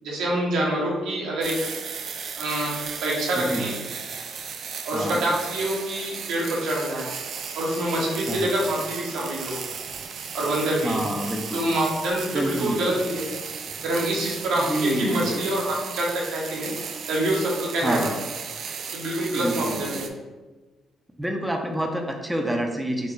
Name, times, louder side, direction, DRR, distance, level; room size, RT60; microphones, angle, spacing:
voice 1, 0.0-1.7 2.3-3.7 4.8-7.1 7.5-9.6 10.3-11.0 11.5-13.3 13.8-16.7 17.1-18.1 18.9-20.1, right 1 dB, 85° right, -3 dB, 1.1 m, -26 dB
sound 1, 1.4-20.1, right 6 dB, 65° right, 0.4 m, -35 dB
voice 2, 10.8-11.6 12.3-12.9 14.5-15.4 17.8-18.2 19.3-20.0 21.2-23.1, right 1 dB, 5° right, 2 dB, 0.5 m, -28 dB
4.4 x 2.1 x 4.6 m, 1.2 s
cardioid pair, 90°, 0 cm